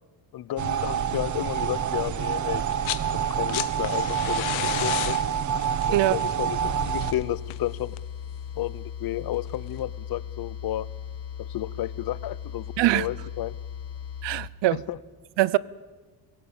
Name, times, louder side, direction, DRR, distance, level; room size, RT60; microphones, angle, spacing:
voice 1, 0.3-2.6 3.1-5.2 5.9-7.9 8.6-10.9 11.4-12.7 12.9-13.5 14.7-15.0, left 13 dB, 50° left, 0.8 m, -32 dB
sound 1, 0.6-7.1, right 8 dB, 40° right, 1.0 m, -27 dB
sound 2, 2.6-3.1 3.3-8.2 9.5-9.6, left 16 dB, 85° left, 1.1 m, -34 dB
sound 3, 6.5-14.5, left 9 dB, 30° left, 1.4 m, -37 dB
voice 2, 14.2-14.8 15.4-15.6, right 16 dB, 65° right, 0.8 m, -22 dB
24.5 x 17.0 x 8.7 m
cardioid pair, 135°, 46 cm